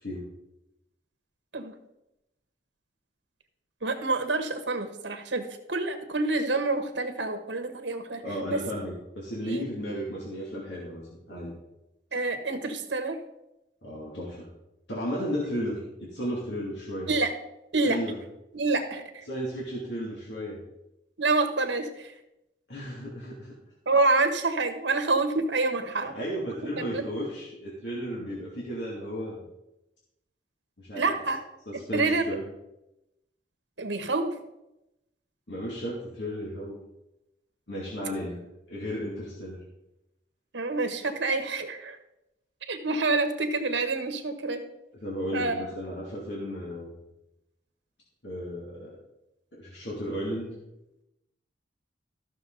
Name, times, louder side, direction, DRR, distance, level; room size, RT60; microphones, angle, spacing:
voice 1, 3.8-8.2 8.5-8.6 9.4-9.6 12.1-13.2 17.1-17.3 17.7-18.0 18.5-19.2 21.2-22.1 23.9-26.2 26.8-27.0 30.9-31.4 31.9-32.3 33.8-34.3 40.5-42.0 42.7-44.6 45.3-45.6, right 3 dB, 80° right, 7 dB, 1.3 m, -27 dB
voice 2, 8.2-11.0 11.3-11.5 13.8-14.5 14.9-17.1 17.8-18.1 19.3-20.6 22.7-23.6 25.9-29.4 30.8-31.1 31.7-32.4 35.5-36.8 37.7-38.4 38.7-39.6 45.0-46.9 48.2-49.0 49.5-50.5, equal, 70° left, -5 dB, 2.4 m, -34 dB
14.0 x 6.4 x 3.9 m, 0.89 s
head